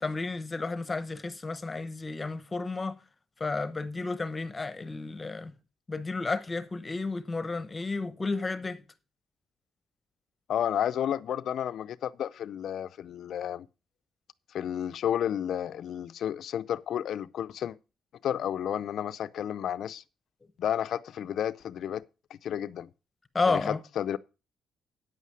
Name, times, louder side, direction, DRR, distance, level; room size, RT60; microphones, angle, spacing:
voice 1, 0.0-3.0 3.4-5.5 5.9-8.8 23.3-23.8, left 3 dB, 25° left, 0.9 m, -32 dB
voice 2, 10.5-13.7 14.5-17.8 18.2-20.0 20.6-22.0 22.4-22.9 23.5-24.2, left 10 dB, 70° left, 0.5 m, -31 dB
9.3 x 8.4 x 4.7 m
cardioid pair, 90°, 0 cm